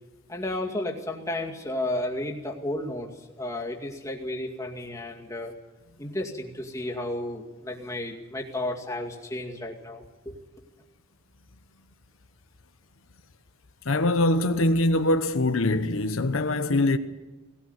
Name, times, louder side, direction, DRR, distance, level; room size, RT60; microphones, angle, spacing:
voice 1, 0.3-5.5 6.0-10.3, left 1 dB, 15° left, 2.3 m, -33 dB
voice 2, 13.9-17.0, left 2 dB, 85° left, 1.1 m, -23 dB
19.5 x 17.5 x 8.0 m
head